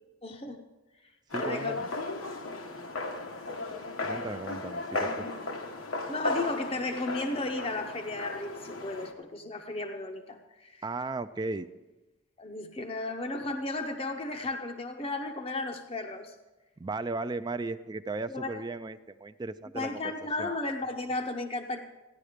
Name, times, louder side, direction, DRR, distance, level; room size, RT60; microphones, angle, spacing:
voice 1, 0.2-0.6 1.4-1.8 6.1-10.8 12.4-16.3 18.3-18.6 19.7-21.8, left 2 dB, 30° left, 5 dB, 0.6 m, -34 dB
sound 1, 1.3-9.1, left 2 dB, 90° left, 1.3 m, -35 dB
voice 2, 1.3-1.9 4.0-5.3 10.8-11.7 16.8-20.1 20.4-20.5, right 3 dB, 20° right, 12 dB, 0.3 m, -36 dB
15.5 x 10.5 x 5.0 m, 1.1 s
head